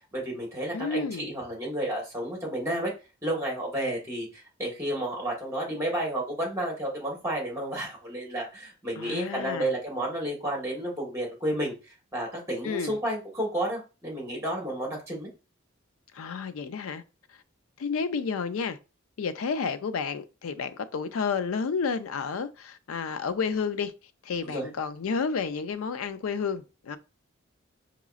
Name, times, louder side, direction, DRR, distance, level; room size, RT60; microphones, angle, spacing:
voice 1, 0.1-2.9 3.2-15.3 24.5-24.7, right 1 dB, 15° right, 1.3 m, -31 dB
voice 2, 0.7-1.3 9.0-9.7 12.6-12.9 16.1-17.0 17.8-18.8 19.2-23.9 24.2-27.0, left 5 dB, 85° left, 0.4 m, -31 dB
4.7 x 3.0 x 2.4 m
head